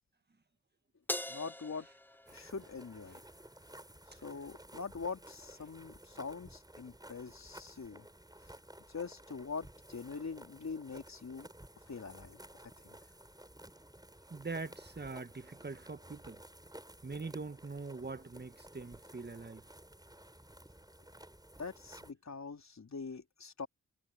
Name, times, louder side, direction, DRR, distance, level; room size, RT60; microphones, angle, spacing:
Crash cymbal, 1.1-3.6, left 1 dB, 5° left, 0.9 m, -43 dB
voice 1, 1.3-1.9 2.3-3.2 4.1-8.1 8.9-11.5 11.9-12.4 12.8-13.0 21.6-23.7, left 5 dB, 60° left, 4.2 m, -43 dB
sound 1, 2.3-22.1, right 1 dB, 10° right, 7.8 m, -55 dB
voice 2, 14.3-16.4 17.0-19.6, right 3 dB, 35° right, 1.7 m, -43 dB
cardioid pair, 45°, 31 cm